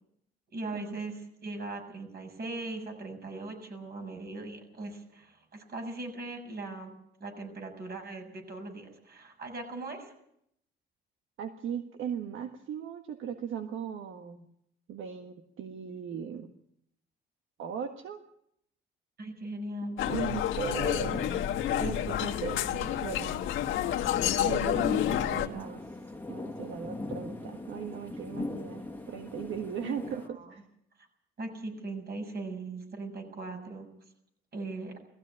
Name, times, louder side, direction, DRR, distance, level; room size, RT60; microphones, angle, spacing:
voice 1, 0.5-6.9 7.2-10.1 19.2-20.0 24.6-25.7 29.8-30.0 30.4-30.5 31.4-33.9 34.5-34.9, right 2 dB, 55° right, 4 dB, 6.8 m, -39 dB
voice 2, 11.4-14.5 14.9-16.5 17.6-18.2 20.0-21.3 21.8-23.4 24.3-25.8 26.3-30.6, right 8 dB, 80° right, 6 dB, 1.6 m, -38 dB
sound 1, 20.0-25.5, left 11 dB, 80° left, 1.5 m, -29 dB
sound 2, 21.0-30.3, left 2 dB, 10° left, 1.8 m, -42 dB
18.5 x 15.0 x 9.7 m, 0.74 s
cardioid pair, 90°, 20 cm